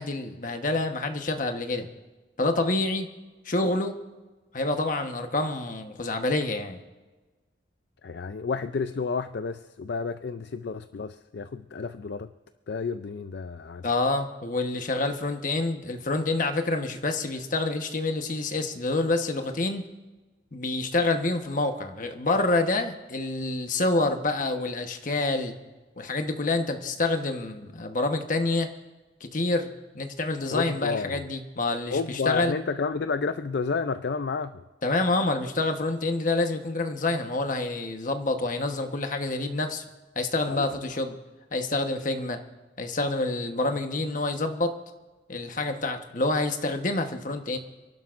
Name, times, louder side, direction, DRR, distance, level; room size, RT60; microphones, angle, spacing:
voice 1, 0.0-1.9 2.4-3.1 3.4-4.0 4.5-6.8 13.8-19.9 20.5-25.6 26.0-28.7 29.2-32.5 34.8-39.8 40.1-41.1 41.5-42.4 42.8-44.7 45.3-47.6, left 2 dB, 45° left, 5 dB, 1.2 m, -27 dB
voice 2, 8.0-12.3 12.7-13.9 30.5-31.2 31.9-34.6 40.5-40.7, left 4 dB, 60° left, 10 dB, 0.4 m, -30 dB
29.5 x 11.5 x 2.5 m, 1.2 s
head